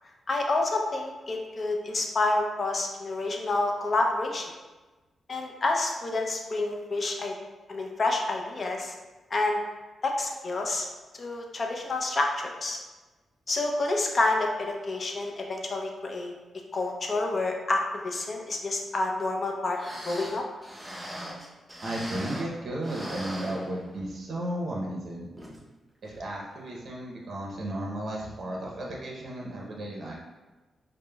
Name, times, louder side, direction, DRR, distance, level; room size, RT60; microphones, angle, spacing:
voice 1, 0.3-4.4 5.3-7.3 7.7-8.9 9.3-9.6 10.0-10.9 11.1-12.8 13.5-16.3 16.7-19.8 20.0-20.4, left 2 dB, 40° left, 1 dB, 0.5 m, -28 dB
sound 1, 19.5-19.6 19.7-22.6 22.8-24.2 24.6-24.7 25.4-25.6 26.0-26.1, equal, 5° right, 0.6 m, -40 dB
voice 2, 21.8-25.3 26.0-30.1, right 1 dB, 55° right, -3 dB, 0.6 m, -34 dB
4.9 x 2.0 x 2.2 m, 1.2 s
cardioid pair, 100°, 0 cm